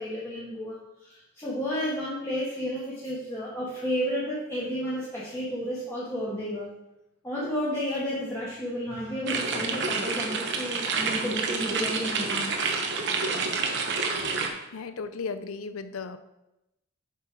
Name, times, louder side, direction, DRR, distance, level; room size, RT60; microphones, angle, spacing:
voice 1, 0.0-6.7 7.2-12.7, equal, 15° left, -9 dB, 1.6 m, -32 dB
sound 1, 9.3-14.5, right 4 dB, 60° right, 1.0 m, -28 dB
voice 2, 14.7-16.2, left 4 dB, 90° left, 11 dB, 0.6 m, -35 dB
7.4 x 5.7 x 4.7 m, 0.92 s
head